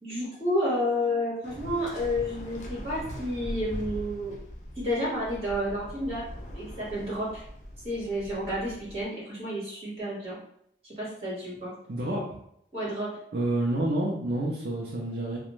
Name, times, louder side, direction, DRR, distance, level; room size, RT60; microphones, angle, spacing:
voice 1, 0.0-4.4 4.7-6.2 6.5-7.4 7.8-10.4 10.8-11.7 12.7-13.1, left 1 dB, 35° right, -7 dB, 1.3 m, -30 dB
Waves surf, 1.4-9.0, equal, 45° left, 0.5 m, -41 dB
voice 2, 11.9-12.2 13.3-15.4, right 1 dB, 65° right, -4 dB, 0.5 m, -28 dB
2.4 x 2.1 x 3.0 m, 0.71 s
head